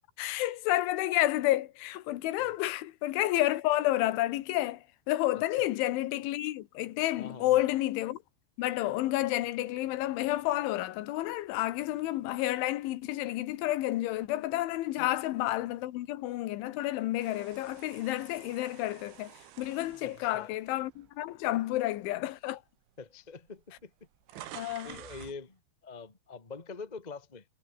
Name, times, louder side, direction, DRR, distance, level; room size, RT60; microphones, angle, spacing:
voice 1, 0.2-8.2 8.6-22.6 24.5-25.0, left 16 dB, 90° left, 3.7 m, -30 dB
voice 2, 7.2-7.6 15.0-15.1 20.0-20.5 21.5-21.6 23.0-23.9 24.3-27.4, left 4 dB, 50° left, 0.5 m, -45 dB
sound 1, 17.2-21.4 22.0-22.2 23.1-23.2 23.4-25.4, right 13 dB, 90° right, 4.0 m, -50 dB
omnidirectional pair, 5.3 m